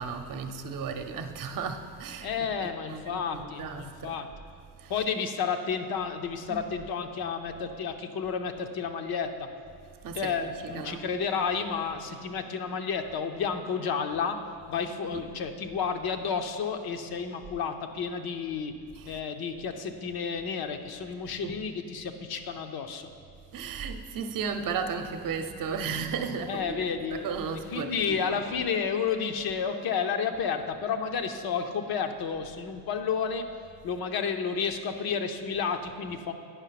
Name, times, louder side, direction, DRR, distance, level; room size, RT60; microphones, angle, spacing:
voice 1, 0.0-2.3 2.6-4.2 4.8-4.9 6.5-6.6 10.0-10.3 10.7-11.0 15.1-15.2 19.1-19.2 21.4-21.6 23.5-26.8 27.1-28.4, right 6 dB, 55° right, 7 dB, 0.8 m, -34 dB
voice 2, 2.2-4.3 4.9-9.5 10.1-14.4 14.7-18.8 19.1-23.1 26.5-27.3 27.7-33.5 33.8-36.3, left 6 dB, 65° left, 6 dB, 0.8 m, -31 dB
9.7 x 5.0 x 5.8 m, 2.4 s
cardioid pair, 95°, 40 cm